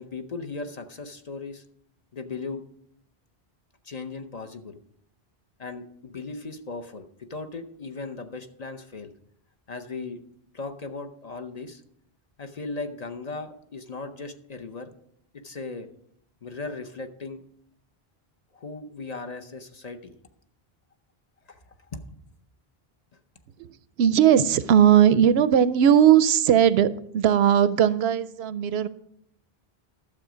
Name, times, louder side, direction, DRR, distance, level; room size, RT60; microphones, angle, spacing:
voice 1, 0.0-1.6 2.1-2.6 3.8-4.8 5.6-9.1 9.7-10.2 10.5-11.8 12.4-14.9 15.3-15.9 16.4-17.4 18.5-20.1 21.5-21.6 21.9-22.2, left 3 dB, 45° left, 6 dB, 0.8 m, -37 dB
voice 2, 23.6-28.9, right 9 dB, 85° right, 15 dB, 0.8 m, -19 dB
12.0 x 7.2 x 5.0 m, 0.70 s
omnidirectional pair, 1.0 m